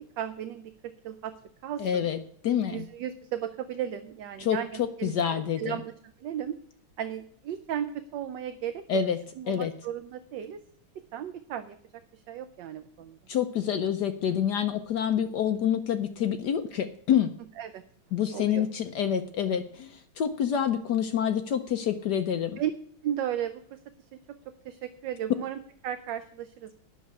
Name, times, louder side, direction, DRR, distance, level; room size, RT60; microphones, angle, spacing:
voice 1, 0.0-1.3 1.6-2.1 2.7-5.9 6.2-6.6 7.0-8.8 9.4-10.6 11.1-11.8 12.1-13.2 17.6-17.8 18.3-18.6 22.6-22.7 23.0-23.8 24.6-26.8, right 10 dB, 70° right, 10 dB, 1.2 m, -35 dB
voice 2, 1.8-2.2 2.4-2.8 4.4-5.8 8.9-9.2 9.5-9.7 13.3-17.3 18.1-22.6, left 8 dB, 70° left, 8 dB, 1.0 m, -27 dB
9.3 x 6.5 x 8.5 m, 0.62 s
omnidirectional pair, 2.3 m